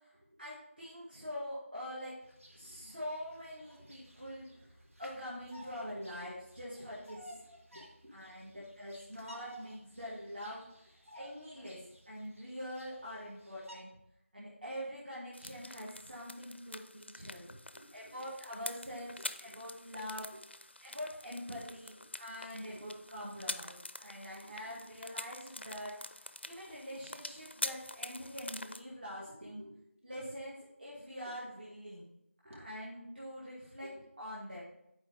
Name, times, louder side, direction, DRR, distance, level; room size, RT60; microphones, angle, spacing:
voice 1, 0.0-2.2 2.5-4.5 5.0-7.4 7.7-10.9 11.1-13.9 14.3-17.4 17.9-20.3 20.8-29.6 30.0-32.1 32.4-34.7, equal, 45° right, -7 dB, 2.0 m, -44 dB
Bird vocalization bird call bird song, 2.2-13.8, right 1 dB, 85° right, 1.9 m, -56 dB
voice 2, 3.8-4.3 4.6-5.0 5.9-6.3 6.8-6.9 7.3-7.4 7.7-8.7 17.1-18.3 19.1-19.6 20.3-20.4 21.9-23.0 23.6-23.7 24.2-25.1 26.6-26.8 29.2-30.3 31.2-31.3 32.4-32.7 33.8-34.0, equal, 65° right, -3 dB, 2.7 m, -58 dB
sound 1, 15.3-28.8, left 1 dB, 55° left, 0.4 m, -46 dB
10.0 x 4.5 x 3.4 m, 0.79 s
figure-of-eight pair, 175°, 7 cm